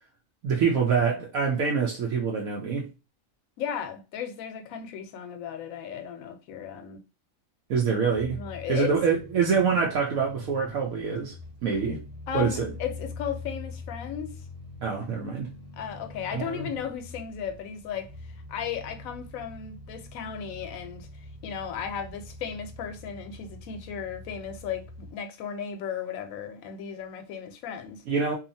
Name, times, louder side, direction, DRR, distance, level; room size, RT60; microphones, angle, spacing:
voice 1, 0.4-2.9 7.7-8.4 8.7-11.3 11.6-12.0 12.3-12.7 14.8-15.5 16.3-16.7 28.1-28.3, right 6 dB, 80° right, 1.0 m, -25 dB
voice 2, 3.6-7.0 8.4-8.9 12.3-14.4 15.7-18.1 18.5-21.1 21.4-28.0, left 8 dB, 80° left, 1.0 m, -35 dB
sound 1, 8.1-25.1, left 2 dB, 30° right, 1.0 m, -44 dB
2.7 x 2.4 x 2.6 m
omnidirectional pair, 1.4 m